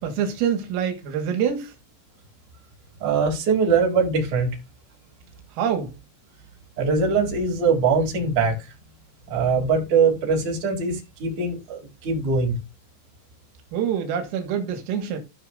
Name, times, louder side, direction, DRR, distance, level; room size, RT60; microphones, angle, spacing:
voice 1, 0.0-1.7 5.6-5.9 13.7-15.2, right 8 dB, 80° right, 4.1 m, -25 dB
voice 2, 3.0-4.5 6.8-8.6 9.3-12.5, right 5 dB, 40° right, 3.9 m, -22 dB
17.0 x 5.9 x 2.5 m
omnidirectional pair, 6.0 m